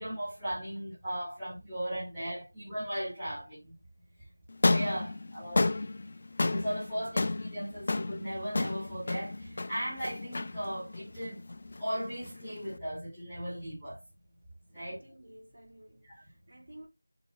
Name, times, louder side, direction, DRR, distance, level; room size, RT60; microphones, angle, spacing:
voice 1, 0.0-3.7 4.6-5.7 6.5-11.4 11.8-14.0 14.7-15.0 16.0-16.2, equal, ahead, 2.6 m, -37 dB
sound 1, 4.5-12.8, left 2 dB, 35° left, 0.3 m, -32 dB
voice 2, 14.7-16.9, right 1 dB, 30° right, 4.3 m, -53 dB
7.1 x 6.2 x 2.4 m
figure-of-eight pair, 175°, 0 cm